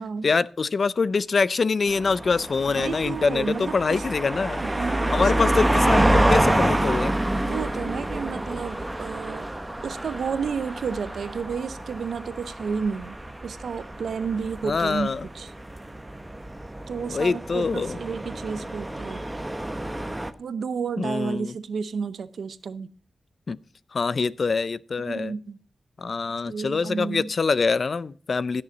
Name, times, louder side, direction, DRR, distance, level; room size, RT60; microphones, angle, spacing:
voice 1, 0.2-4.6 5.1-7.1 14.6-15.2 17.1-18.0 21.0-21.5 23.5-23.6 23.9-25.3 26.0-28.6, left 4 dB, 55° left, 0.5 m, -24 dB
sound 1, 1.9-20.3, right 1 dB, 15° right, 0.9 m, -27 dB
voice 2, 2.7-4.0 4.6-5.6 7.4-9.5 9.8-15.5 16.9-19.2 20.4-22.9 25.0-25.6 26.5-27.3, right 5 dB, 85° right, 0.7 m, -31 dB
16.0 x 6.9 x 4.0 m
wide cardioid pair, 85°, 0 cm